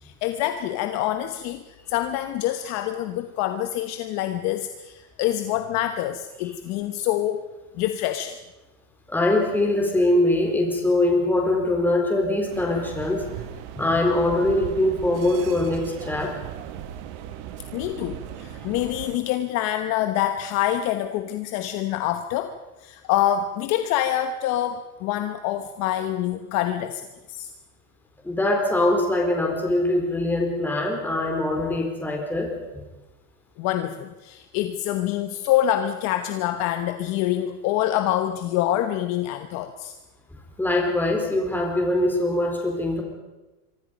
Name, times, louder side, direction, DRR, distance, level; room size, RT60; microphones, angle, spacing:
voice 1, 0.0-7.5 7.7-8.4 17.7-27.5 33.6-39.9, left 12 dB, 40° left, 8 dB, 1.1 m, -26 dB
voice 2, 9.1-13.3 13.8-16.4 18.6-18.7 28.2-32.8 40.6-43.0, left 1 dB, 5° left, 1 dB, 4.3 m, -23 dB
sound 1, 12.5-19.2, right 11 dB, 50° right, 1.7 m, -38 dB
26.0 x 24.5 x 5.3 m, 1.1 s
supercardioid pair, 165°, 43 cm